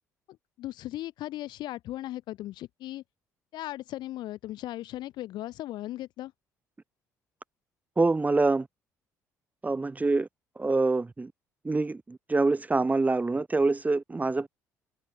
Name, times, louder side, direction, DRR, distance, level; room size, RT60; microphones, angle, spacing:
voice 1, 0.6-3.0 3.5-6.3, left 15 dB, 60° left, 0.7 m, -37 dB
voice 2, 8.0-8.7 9.6-10.3 10.6-11.3 11.6-14.5, right 3 dB, 20° right, 0.8 m, -25 dB
figure-of-eight pair, 50°, 9 cm